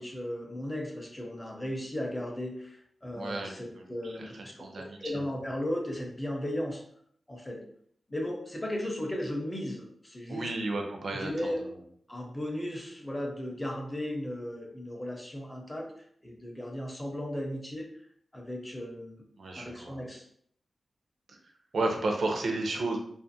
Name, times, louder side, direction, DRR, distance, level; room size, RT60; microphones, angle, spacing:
voice 1, 0.0-6.8 7.3-7.6 8.1-10.5 11.1-11.6 12.1-15.9 16.2-17.9 18.3-19.2 19.6-20.2, left 1 dB, 15° left, 1 dB, 0.5 m, -36 dB
voice 2, 3.1-3.6 4.0-5.1 10.3-11.5 19.4-20.0 21.3-21.4 21.7-23.0, right 2 dB, 75° right, 2 dB, 0.5 m, -32 dB
2.4 x 2.4 x 2.7 m, 0.66 s
wide cardioid pair, 135°, 0 cm